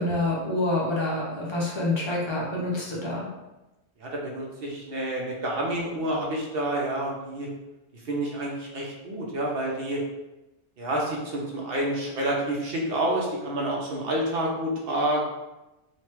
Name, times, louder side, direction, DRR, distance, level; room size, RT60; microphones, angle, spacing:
voice 1, 0.0-3.2, left 2 dB, 30° left, -5 dB, 0.6 m, -27 dB
voice 2, 4.0-7.5 7.9-10.0 10.8-15.3, right 1 dB, 65° right, -2 dB, 0.8 m, -28 dB
3.1 x 2.1 x 3.0 m, 1.0 s
omnidirectional pair, 1.1 m